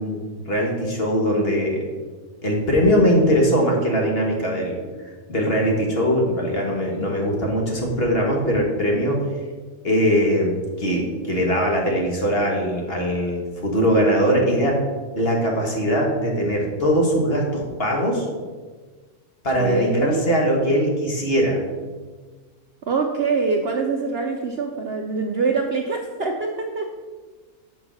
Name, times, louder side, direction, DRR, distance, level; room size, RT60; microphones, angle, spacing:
voice 1, 0.0-1.9 2.4-4.8 5.3-9.3 9.8-14.8 15.2-18.3 19.4-21.6, equal, 40° left, -1 dB, 1.6 m, -21 dB
voice 2, 19.6-20.2 22.8-26.9, right 4 dB, 55° right, 3 dB, 0.7 m, -24 dB
6.3 x 5.4 x 6.1 m, 1.4 s
omnidirectional pair, 1.5 m